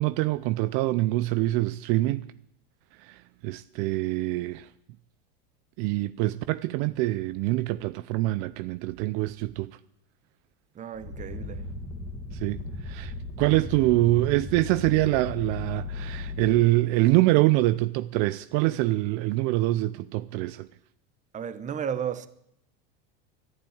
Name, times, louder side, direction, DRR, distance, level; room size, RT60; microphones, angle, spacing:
voice 1, 0.0-2.3 3.0-4.7 5.8-9.7 12.3-20.7, right 18 dB, 60° right, 0.6 m, -25 dB
voice 2, 10.7-11.7 21.3-22.3, right 8 dB, 25° right, 1.0 m, -33 dB
sound 1, 10.9-16.7, left 3 dB, 5° left, 2.5 m, -37 dB
12.0 x 11.0 x 9.3 m
supercardioid pair, 125°, 29 cm